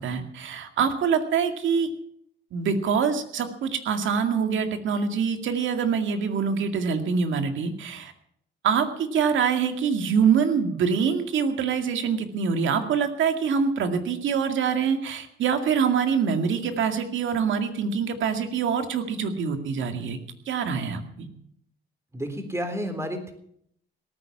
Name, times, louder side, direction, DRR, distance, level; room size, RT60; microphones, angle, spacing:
voice 1, 0.0-1.9 2.5-8.1 8.6-20.2 20.5-21.3, right 6 dB, 75° right, 7 dB, 2.1 m, -25 dB
voice 2, 22.1-23.3, equal, 15° right, 7 dB, 3.6 m, -31 dB
18.0 x 9.4 x 7.3 m, 0.71 s
cardioid pair, 90°, 20 cm